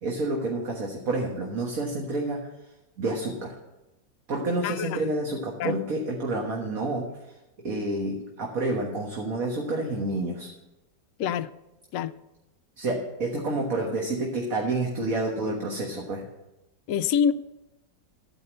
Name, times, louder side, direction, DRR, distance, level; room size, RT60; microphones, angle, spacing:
voice 1, 0.0-2.4 3.0-3.5 4.3-7.1 7.6-10.5 12.8-16.2, right 2 dB, 55° right, 0 dB, 1.8 m, -29 dB
voice 2, 4.6-5.1 5.6-5.7 11.2-11.5 11.9-12.1 16.9-17.3, left 8 dB, 70° left, 9 dB, 0.8 m, -25 dB
14.0 x 5.4 x 7.9 m, 0.96 s
omnidirectional pair, 1.8 m